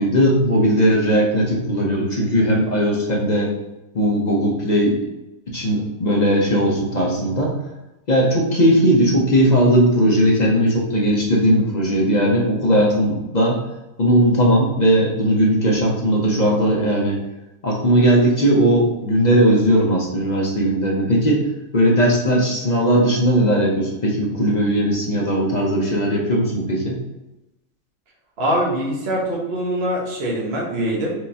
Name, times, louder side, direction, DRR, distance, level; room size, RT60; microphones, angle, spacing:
voice 1, 0.0-3.5 3.9-5.0 5.5-7.5 8.1-13.6 14.0-17.2 17.6-21.5 21.7-27.0, equal, 45° left, -2 dB, 0.6 m, -18 dB
voice 2, 28.4-31.1, right 1 dB, 50° right, -3 dB, 1.1 m, -23 dB
4.7 x 3.4 x 2.7 m, 0.99 s
omnidirectional pair, 1.5 m